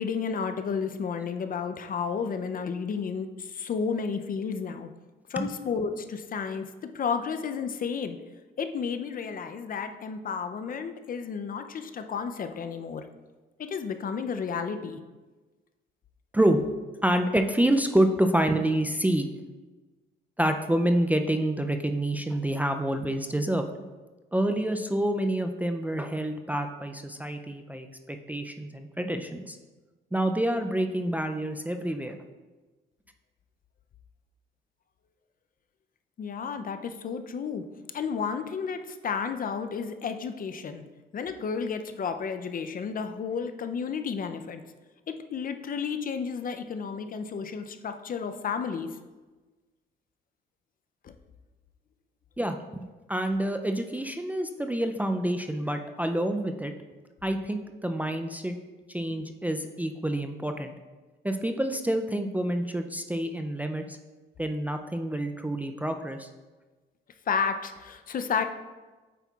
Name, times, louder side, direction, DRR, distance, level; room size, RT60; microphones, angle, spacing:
voice 1, 0.0-4.9 5.3-8.2 8.6-13.1 13.6-15.0 36.2-37.6 37.9-40.8 41.1-44.6 45.1-48.9 51.0-51.1 67.3-68.4, left 6 dB, 45° left, 8 dB, 0.5 m, -32 dB
voice 2, 17.0-19.3 20.4-23.7 24.3-29.6 30.1-32.2 52.4-56.7 57.2-58.5 58.9-60.7 61.2-64.0 64.4-66.3, right 1 dB, 10° right, 5 dB, 0.4 m, -27 dB
8.2 x 5.4 x 2.4 m, 1.2 s
cardioid pair, 90°, 20 cm